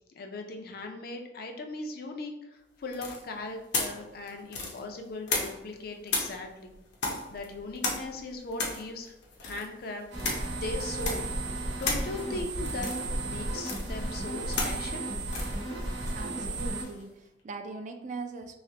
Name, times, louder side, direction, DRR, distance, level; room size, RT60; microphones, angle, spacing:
voice 1, 0.1-6.7 7.3-9.1 9.4-11.3 11.8-12.9 13.2-15.1, left 2 dB, 55° left, 4 dB, 0.4 m, -39 dB
sound 1, 2.9-5.7 6.1-17.0, left 3 dB, 85° left, 0.7 m, -35 dB
sound 2, 10.1-16.8, right 2 dB, 85° right, 0.9 m, -34 dB
voice 2, 16.1-18.6, right 3 dB, 45° right, 6 dB, 0.3 m, -40 dB
3.2 x 2.8 x 2.8 m, 0.92 s
head